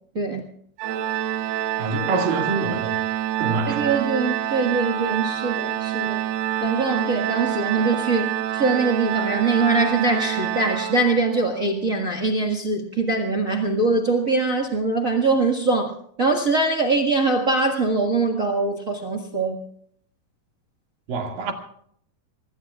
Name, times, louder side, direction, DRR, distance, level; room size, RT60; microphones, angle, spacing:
Organ, 0.8-11.5, right 13 dB, 85° right, 2.9 m, -27 dB
voice 1, 1.8-3.0 3.4-4.0 21.1-21.5, right 3 dB, 65° right, 3.7 m, -26 dB
voice 2, 3.7-6.2 6.6-15.9 16.2-19.6, right 3 dB, 45° right, 1.0 m, -22 dB
26.0 x 20.5 x 2.4 m
omnidirectional pair, 4.4 m